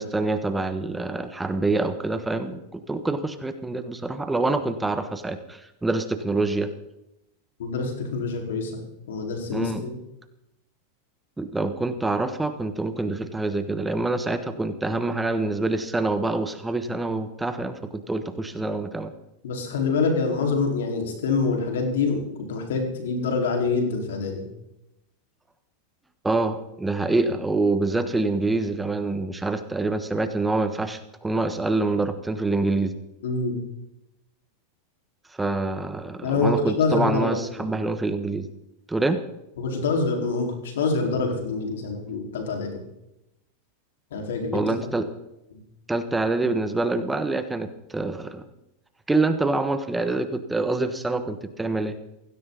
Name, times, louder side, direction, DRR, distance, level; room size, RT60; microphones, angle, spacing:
voice 1, 0.0-6.7 9.5-9.9 11.4-19.1 26.2-32.9 35.4-38.5 38.9-39.2 44.5-45.0 45.9-48.4 49.1-52.0, right 2 dB, 10° right, 9 dB, 1.4 m, -26 dB
voice 2, 7.6-8.7 9.1-10.0 19.4-22.2 22.5-24.4 33.2-33.5 36.2-37.6 39.6-42.7 44.1-44.6, left 4 dB, 85° left, 2 dB, 4.7 m, -25 dB
17.0 x 16.5 x 4.1 m, 0.87 s
hypercardioid pair, 120°, 0 cm